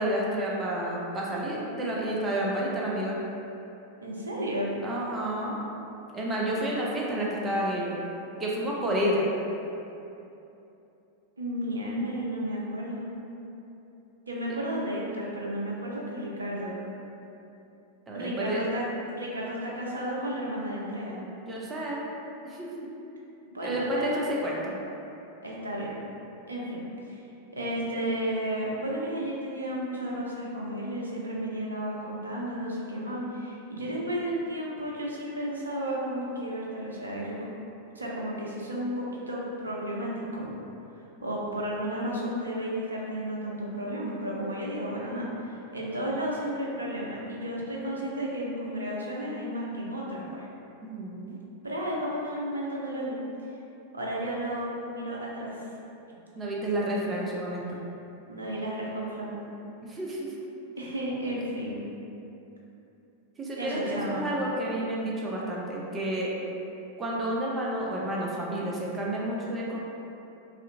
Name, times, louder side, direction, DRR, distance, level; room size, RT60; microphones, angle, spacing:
voice 1, 0.0-3.2 4.8-5.6 6.1-8.0 8.4-9.3 18.1-18.6 21.4-22.1 22.4-22.9 23.6-24.8 50.8-51.4 56.4-57.8 59.8-60.3 63.4-66.3 67.0-69.8, right 1 dB, 20° right, -4 dB, 0.4 m, -30 dB
voice 2, 4.0-4.7 11.4-13.1 14.3-16.7 18.1-18.9 19.2-21.2 23.5-24.2 25.4-26.0 26.5-27.2 27.5-37.4 38.0-40.5 41.2-50.5 51.6-53.2 53.9-55.5 58.3-59.4 60.8-61.8 63.5-64.3, equal, 75° right, -4 dB, 0.5 m, -33 dB
2.5 x 2.4 x 2.7 m, 2.9 s
figure-of-eight pair, 90°, 0 cm